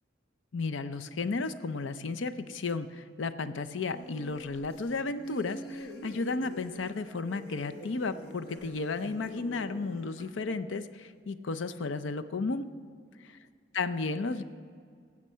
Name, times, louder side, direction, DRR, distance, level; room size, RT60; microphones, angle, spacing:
voice 1, 0.5-12.7 13.7-14.4, left 3 dB, 70° left, 11 dB, 0.5 m, -33 dB
sound 1, 3.9-10.3, equal, 55° left, 1.1 m, -46 dB
17.5 x 7.4 x 5.6 m, 2.1 s
head